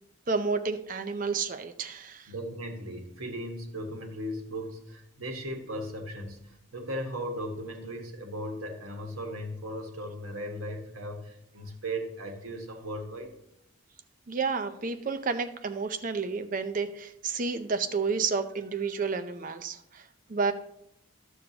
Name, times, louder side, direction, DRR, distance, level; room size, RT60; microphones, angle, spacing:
voice 1, 0.3-2.3 14.3-20.0 20.3-20.5, right 4 dB, 40° right, 9 dB, 0.5 m, -30 dB
voice 2, 2.3-13.3, equal, 85° right, 2 dB, 1.5 m, -37 dB
11.5 x 6.9 x 2.9 m, 0.78 s
head